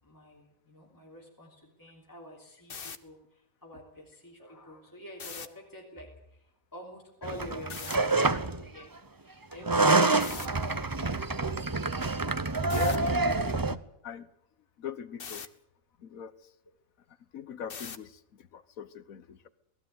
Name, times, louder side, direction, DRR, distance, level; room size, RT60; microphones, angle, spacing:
voice 1, 0.0-10.9 13.2-13.4, equal, 15° left, -1 dB, 3.5 m, -48 dB
sound 1, 2.6-3.0 5.1-5.5 7.7-8.0 10.2-10.5 12.7-13.0 15.2-15.5 17.7-18.1, left 6 dB, 45° left, 1.2 m, -40 dB
sound 2, 7.2-8.6 9.5-13.7, right 3 dB, 20° right, 0.5 m, -27 dB
voice 2, 12.7-13.2 13.7-13.8 14.0-14.3 14.8-15.5 16.0-16.3 17.3-19.5, left 8 dB, 80° left, 14 dB, 1.4 m, -41 dB
19.5 x 15.0 x 9.5 m, 0.80 s
omnidirectional pair, 1.4 m